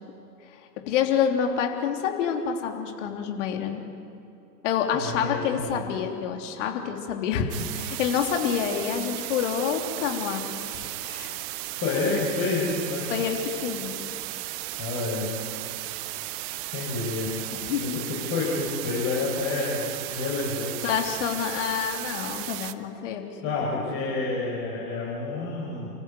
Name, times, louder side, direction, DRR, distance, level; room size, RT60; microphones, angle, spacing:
voice 1, 0.5-3.8 4.6-11.4 13.1-13.9 17.5-18.1 20.8-23.6, left 8 dB, 50° left, 4 dB, 3.4 m, -28 dB
voice 2, 4.9-5.8 11.7-13.1 14.8-15.3 16.7-17.4 17.8-19.9 20.1-20.8 23.4-25.9, left 3 dB, 30° left, -5 dB, 6.0 m, -29 dB
sound 1, 7.5-22.7, right 16 dB, 25° right, 0.7 m, -35 dB
29.5 x 15.0 x 9.4 m, 2.8 s
figure-of-eight pair, 115°, 48 cm